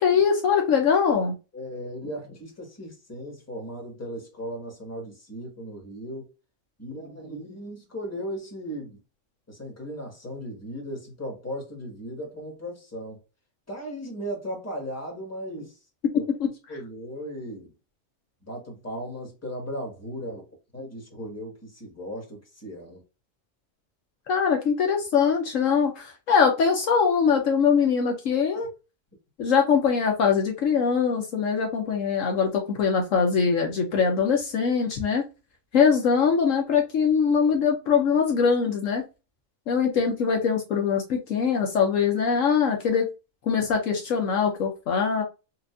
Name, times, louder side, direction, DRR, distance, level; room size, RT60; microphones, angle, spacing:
voice 1, 0.0-1.3 16.4-16.5 24.3-28.7 29.4-35.2 35.7-39.0 39.7-43.0 43.5-45.2, left 6 dB, 70° left, 1.1 m, -22 dB
voice 2, 1.5-6.3 6.8-9.0 9.5-13.2 13.7-15.8 16.2-16.3 16.7-17.7 18.4-20.5 20.7-23.0, equal, 10° left, 1.4 m, -37 dB
4.4 x 2.5 x 2.5 m
omnidirectional pair, 1.5 m